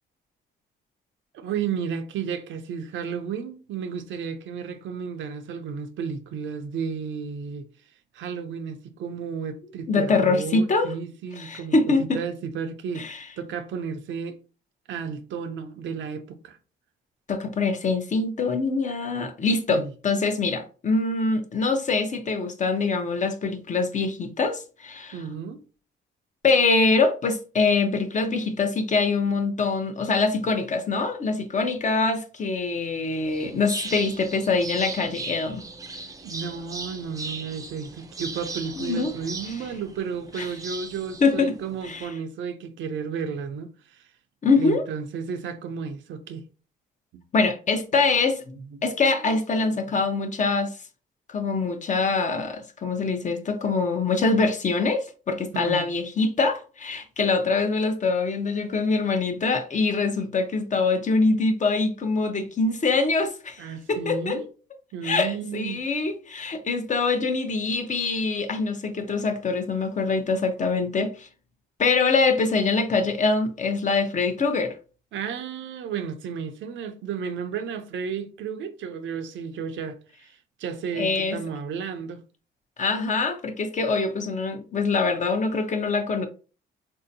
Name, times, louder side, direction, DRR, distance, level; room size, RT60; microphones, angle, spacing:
voice 1, 1.3-7.7 8.1-14.4 14.9-16.6 19.7-19.9 25.1-25.6 36.2-44.1 44.6-46.5 47.1-47.2 48.7-48.9 49.9-50.0 55.5-55.9 63.6-64.5 64.9-65.8 75.1-82.2, right 6 dB, 70° right, 0.5 m, -33 dB
voice 2, 9.9-10.9 11.4-12.2 12.9-13.2 17.3-25.2 26.4-35.6 38.8-39.1 40.4-40.5 41.2-41.5 41.8-42.1 44.4-44.8 47.3-50.7 51.3-64.4 65.0-71.3 71.8-74.8 81.0-81.4 82.8-86.3, left 4 dB, 40° left, 0.7 m, -24 dB
sound 1, 33.1-42.0, right 3 dB, 15° right, 0.5 m, -38 dB
3.3 x 2.7 x 2.7 m
cardioid pair, 90°, 20 cm